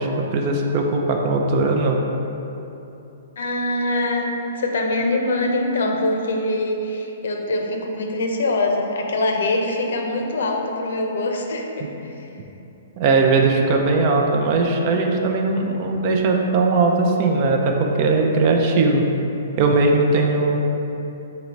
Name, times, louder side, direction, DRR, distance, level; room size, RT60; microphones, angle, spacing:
voice 1, 0.0-2.0 13.0-19.0 19.6-20.6, right 3 dB, 40° right, 2 dB, 0.5 m, -19 dB
voice 2, 3.4-12.3, left 2 dB, 75° left, 2 dB, 0.6 m, -23 dB
3.8 x 3.1 x 4.5 m, 3.0 s
hypercardioid pair, 145°, 0 cm